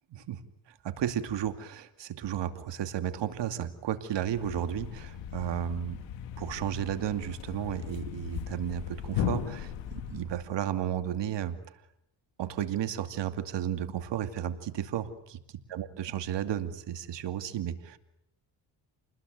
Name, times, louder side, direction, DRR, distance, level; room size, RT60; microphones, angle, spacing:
voice 1, 0.1-0.4 0.8-6.0 6.4-9.7 10.1-11.6 12.4-15.4 15.7-18.0, right 10 dB, 70° right, 9 dB, 2.6 m, -33 dB
Thump thud, 4.3-10.5, left 9 dB, 90° left, 2.2 m, -37 dB
29.0 x 20.5 x 9.4 m, 0.79 s
supercardioid pair, 70°, 44 cm